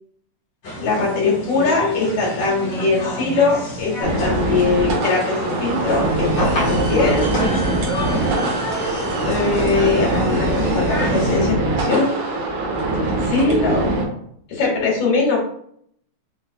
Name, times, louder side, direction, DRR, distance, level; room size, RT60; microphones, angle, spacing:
sound 1, 0.6-11.5, equal, 50° left, 1.4 m, -28 dB
voice 1, 0.8-7.5 9.3-12.1 13.3-13.8 14.5-15.4, left 4 dB, 70° left, -4 dB, 3.1 m, -21 dB
sound 2, 4.0-14.1, right 2 dB, 85° right, 2.9 m, -22 dB
sound 3, 6.0-11.3, right 3 dB, 65° right, 1.8 m, -33 dB
7.1 x 3.2 x 2.2 m, 0.67 s
omnidirectional pair, 3.9 m